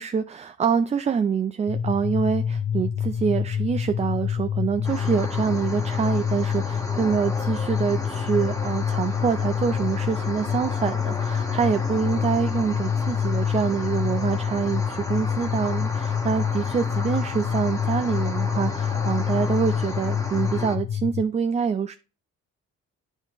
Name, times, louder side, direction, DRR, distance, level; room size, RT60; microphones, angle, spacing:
voice 1, 0.0-21.9, right 6 dB, 25° right, 10 dB, 0.3 m, -26 dB
sound 1, 1.7-21.2, left 8 dB, 40° left, 0.4 m, -27 dB
sound 2, 4.8-20.8, left 1 dB, 10° left, 1.4 m, -35 dB
9.0 x 3.1 x 4.8 m, 0.34 s
cardioid pair, 90°, 30 cm